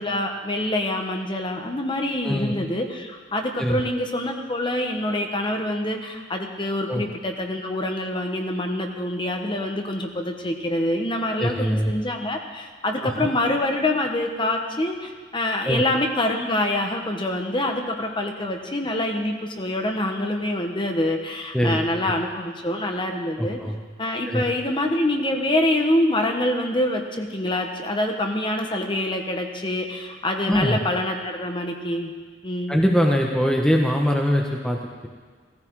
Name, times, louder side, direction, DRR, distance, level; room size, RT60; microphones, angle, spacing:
voice 1, 0.0-23.6 24.0-32.1 32.4-32.8, left 1 dB, 25° left, 3 dB, 1.2 m, -25 dB
voice 2, 2.2-2.5 3.6-3.8 6.9-7.0 11.4-11.9 13.0-13.3 15.6-15.8 21.5-21.8 22.1-22.2 23.4-23.8 24.3-24.5 30.5-30.8 32.7-35.1, equal, 5° left, 0 dB, 1.0 m, -22 dB
17.0 x 15.0 x 4.8 m, 1.5 s
head